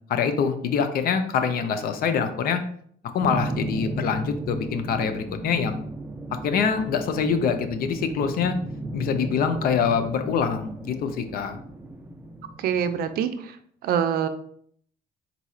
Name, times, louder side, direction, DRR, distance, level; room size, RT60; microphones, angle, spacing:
voice 1, 0.1-2.6 3.1-5.8 6.4-8.6 8.9-11.6, left 6 dB, 60° left, 8 dB, 0.6 m, -25 dB
sound 1, 3.2-13.0, right 2 dB, 10° right, 0.5 m, -35 dB
voice 2, 12.6-13.5 13.8-14.3, right 8 dB, 65° right, 9 dB, 0.5 m, -25 dB
4.0 x 2.4 x 4.3 m, 0.62 s
cardioid pair, 110°, 17 cm